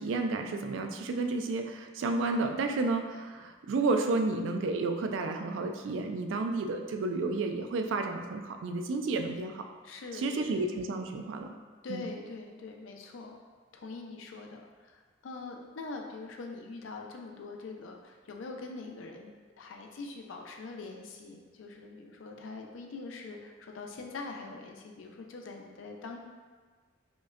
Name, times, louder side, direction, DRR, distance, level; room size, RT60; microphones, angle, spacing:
voice 1, 0.0-9.7 10.2-11.5 11.9-12.0, right 3 dB, 70° right, 5 dB, 0.3 m, -31 dB
voice 2, 9.8-10.6 11.8-13.4 13.7-26.2, left 3 dB, 75° left, 2 dB, 0.4 m, -43 dB
5.0 x 2.1 x 2.4 m, 1.4 s
head